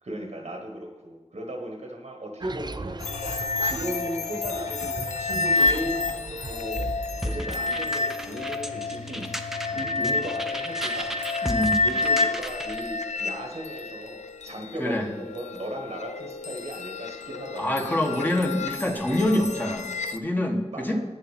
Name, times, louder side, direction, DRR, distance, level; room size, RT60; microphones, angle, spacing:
voice 1, 0.0-6.0 6.4-6.9 7.2-11.2 11.8-17.7 20.7-21.0, right 1 dB, 70° right, 1 dB, 1.4 m, -36 dB
sound 1, 2.4-7.5, right 3 dB, 40° right, 0.5 m, -37 dB
sound 2, 3.0-20.2, left 3 dB, 80° left, 0.6 m, -30 dB
sound 3, 7.2-12.9, equal, 5° right, 0.7 m, -35 dB
voice 2, 11.4-11.8 14.8-15.1 17.6-21.0, left 1 dB, 15° left, 2 dB, 1.6 m, -26 dB
9.7 x 6.7 x 7.4 m, 1.1 s
wide cardioid pair, 70°, 12 cm